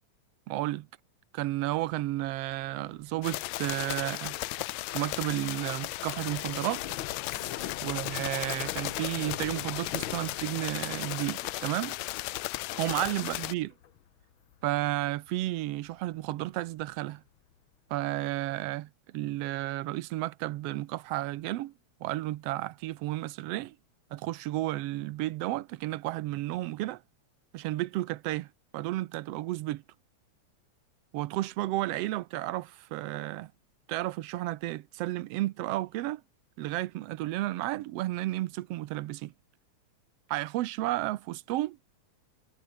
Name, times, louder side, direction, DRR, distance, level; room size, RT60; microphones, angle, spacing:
voice 1, 0.5-0.9 1.3-4.4 4.9-6.8 7.8-12.0 12.7-13.7 14.6-17.2 17.9-21.7 22.0-23.7 24.1-27.0 27.5-28.5 28.7-29.8 31.1-33.5 33.9-36.2 36.6-39.3 40.3-41.8, right 16 dB, 75° right, 1.6 m, -32 dB
sound 1, 1.7-16.3 16.7-17.1 17.4-17.7, left 10 dB, 55° left, 1.6 m, -46 dB
sound 2, 3.2-13.5, left 19 dB, 80° left, 1.8 m, -35 dB
omnidirectional pair, 3.3 m